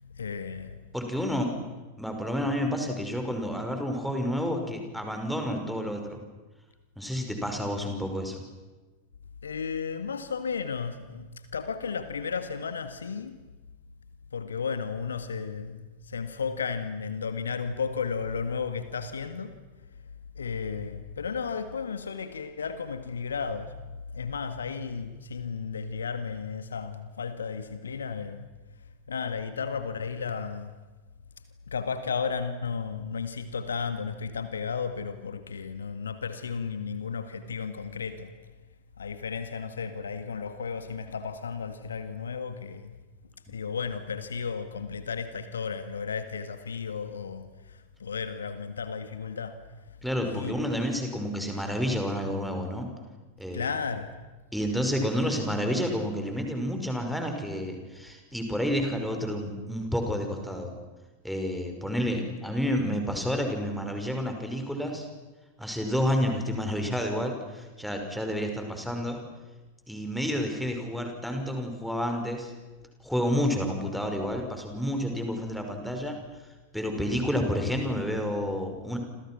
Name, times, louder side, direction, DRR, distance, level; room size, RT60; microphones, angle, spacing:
voice 1, 0.0-0.8 1.5-1.7 9.4-13.4 14.3-19.5 20.4-23.7 24.1-28.5 29.1-30.7 31.7-38.3 39.0-42.9 43.5-49.6 50.2-50.6 53.5-54.1, left 5 dB, 70° left, 10 dB, 1.8 m, -34 dB
voice 2, 0.9-1.6 2.0-6.2 7.0-8.4 50.0-52.9 53.4-53.7 54.5-60.8 61.2-65.1 65.6-69.2 69.9-72.5 73.0-76.2 76.7-79.0, equal, ahead, 4 dB, 5.4 m, -30 dB
29.5 x 27.0 x 6.1 m, 1.2 s
figure-of-eight pair, 90°, 0 cm